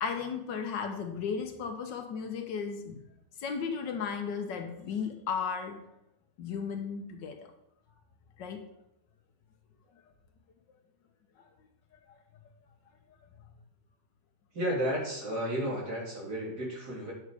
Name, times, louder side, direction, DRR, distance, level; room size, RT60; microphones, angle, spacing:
voice 1, 0.0-3.0 3.4-5.8 6.4-7.5 8.4-8.6, left 6 dB, 75° left, 6 dB, 1.7 m, -35 dB
voice 2, 14.5-17.1, equal, 60° right, -4 dB, 3.6 m, -32 dB
9.3 x 6.3 x 4.8 m, 0.82 s
omnidirectional pair, 2.0 m